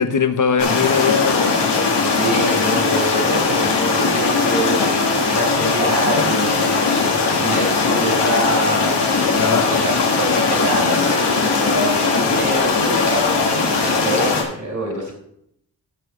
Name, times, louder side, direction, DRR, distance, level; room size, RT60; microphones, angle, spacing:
voice 1, 0.0-1.6 9.4-10.0, left 6 dB, 50° left, 1.1 m, -20 dB
sound 1, 0.6-14.4, left 4 dB, 80° left, 2.0 m, -19 dB
voice 2, 1.9-15.1, right 1 dB, 45° right, 3.9 m, -26 dB
15.0 x 6.0 x 3.2 m
cardioid pair, 50°, 41 cm